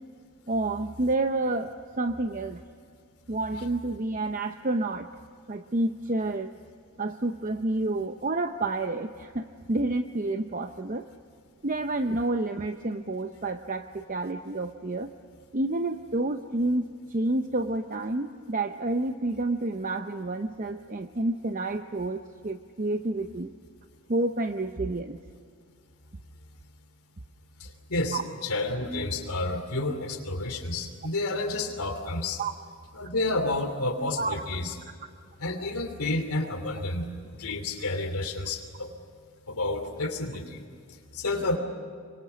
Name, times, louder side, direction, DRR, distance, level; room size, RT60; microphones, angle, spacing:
voice 1, 0.5-2.6 3.3-5.1 5.5-6.5 7.0-11.1 11.6-15.1 15.5-23.5 24.1-25.2 28.1-28.2 32.4-32.5 34.2-34.4, right 2 dB, 35° right, 7 dB, 0.7 m, -29 dB
voice 2, 27.6-32.4 33.0-34.7 35.4-37.1 37.3-38.9 39.5-40.6 41.1-41.6, left 2 dB, 85° left, 4 dB, 2.9 m, -30 dB
27.0 x 24.5 x 7.0 m, 2.2 s
head